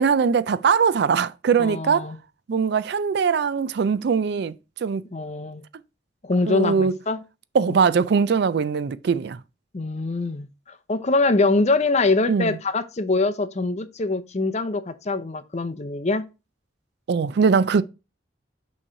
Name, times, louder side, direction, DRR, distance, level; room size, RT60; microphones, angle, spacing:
voice 1, 0.0-2.1 2.5-4.6 4.8-5.0 6.5-6.9 7.5-9.4 12.3-12.6 17.1-17.8, right 6 dB, 60° right, 0.4 m, -21 dB
voice 2, 1.6-2.2 5.1-5.6 6.2-7.2 9.7-10.5 10.9-16.2, left 3 dB, 35° left, 0.6 m, -23 dB
6.2 x 3.1 x 5.5 m
head